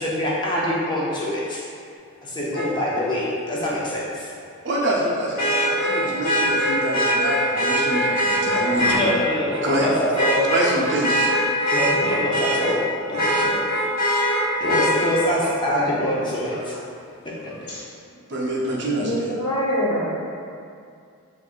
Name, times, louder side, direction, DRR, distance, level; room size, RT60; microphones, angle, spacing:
voice 1, 0.0-1.6 2.2-4.3 8.9-10.5 11.7-13.7 14.6-16.7 17.2-17.5, left 1 dB, 20° left, -5 dB, 0.5 m, -25 dB
Vehicle horn car horn honking, 2.5-2.7 5.4-9.0 9.5-9.8 10.1-12.8 13.1-14.9 16.7-16.8, equal, 45° left, 1.0 m, -22 dB
voice 2, 4.6-9.0 9.6-9.9 10.5-11.3 13.1-13.3 18.3-19.3, right 1 dB, 50° right, -4 dB, 0.6 m, -25 dB
voice 3, 15.4-16.0 16.3-16.7 17.7-17.8 19.0-20.0, equal, 80° left, -7 dB, 1.0 m, -26 dB
4.4 x 2.4 x 2.4 m, 2.3 s
head